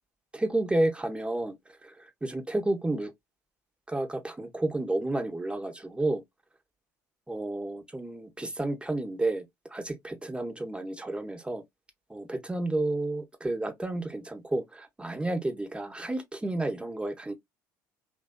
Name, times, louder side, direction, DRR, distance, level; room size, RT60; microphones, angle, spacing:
voice 1, 0.3-1.6 1.8-3.1 3.9-6.2 7.3-9.4 9.7-11.6 12.1-17.3, right 2 dB, 10° right, 1.0 m, -31 dB
3.1 x 2.5 x 2.2 m
hypercardioid pair, 65°, 9 cm